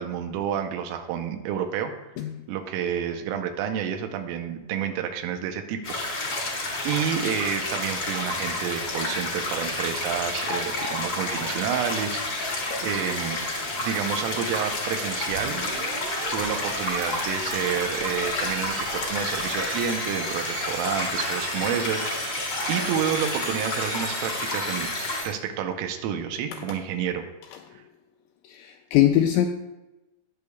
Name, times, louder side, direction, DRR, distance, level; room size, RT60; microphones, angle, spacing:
voice 1, 0.0-1.9 2.5-5.8 6.1-6.4 6.8-13.4 13.8-15.6 16.3-22.0 22.7-24.9 25.2-27.2, right 8 dB, 85° right, 3.3 m, -29 dB
sound 1, 5.8-25.2, left 2 dB, 50° left, 1.4 m, -30 dB
sound 2, 15.3-25.3, right 4 dB, 60° right, 2.5 m, -38 dB
voice 2, 28.5-29.5, left 12 dB, 85° left, 2.7 m, -22 dB
18.5 x 6.6 x 2.3 m
omnidirectional pair, 5.8 m